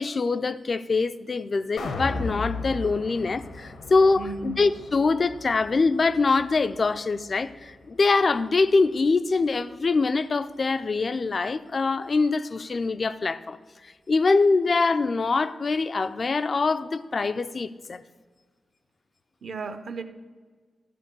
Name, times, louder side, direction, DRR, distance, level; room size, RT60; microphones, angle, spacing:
voice 1, 0.0-13.6 13.8-18.0, left 3 dB, 35° left, 0.4 m, -24 dB
sound 1, 1.8-8.0 8.4-8.5, left 3 dB, 85° left, 1.1 m, -37 dB
voice 2, 4.2-4.6 19.4-20.0, right 4 dB, 50° right, 0.6 m, -34 dB
13.5 x 4.5 x 6.8 m
wide cardioid pair, 175°, 0 cm